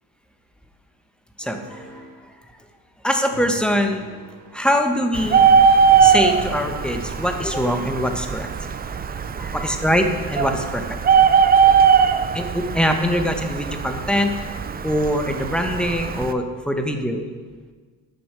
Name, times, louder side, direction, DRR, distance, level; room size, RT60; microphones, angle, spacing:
voice 1, 1.4-2.4 3.0-4.0 4.5-5.5 6.0-8.5 9.1-11.0 12.3-14.4 14.8-17.3, equal, ahead, 5 dB, 1.0 m, -23 dB
sound 1, 1.4-2.3 3.3-4.9 5.3-7.2, right 2 dB, 55° right, 2.3 m, -41 dB
Bird, 5.1-16.3, right 6 dB, 20° right, 0.4 m, -20 dB
9.4 x 6.1 x 4.9 m, 1.5 s
supercardioid pair, 75°, 48 cm